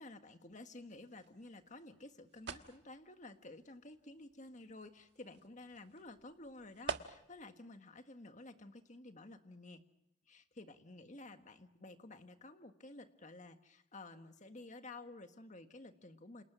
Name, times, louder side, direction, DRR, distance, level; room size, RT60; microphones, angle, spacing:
voice 1, 0.0-9.8 10.3-16.4, left 2 dB, 40° left, 7 dB, 1.6 m, -53 dB
sound 1, 1.1-7.5, right 5 dB, 65° right, 1.5 m, -49 dB
29.0 x 28.0 x 6.2 m, 0.79 s
head